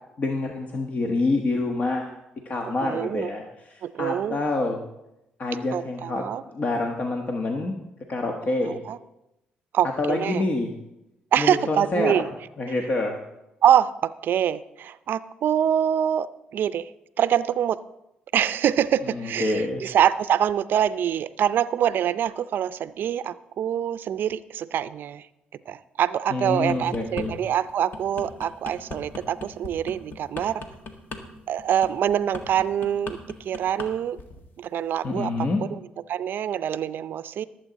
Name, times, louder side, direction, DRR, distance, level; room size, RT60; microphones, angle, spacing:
voice 1, 0.2-2.1 2.4-3.4 3.7-4.8 5.4-6.2 6.5-7.7 8.1-8.8 10.0-10.7 11.4-12.3 12.6-13.2 19.0-19.8 26.3-27.4 35.0-35.6, left 2 dB, 45° left, 2 dB, 1.3 m, -26 dB
voice 2, 2.8-3.3 3.8-4.4 5.7-6.4 8.6-9.0 9.7-10.4 11.3-12.3 13.6-16.3 16.5-16.9 17.2-17.8 18.3-25.3 25.7-30.6 31.5-34.2 34.6-35.8 36.1-37.4, right 9 dB, 65° right, 15 dB, 0.5 m, -25 dB
sound 1, 26.5-27.3 27.7-33.9 34.2-34.5, left 3 dB, 60° left, 1.7 m, -38 dB
19.5 x 8.0 x 4.0 m, 0.90 s
supercardioid pair, 70°, 4 cm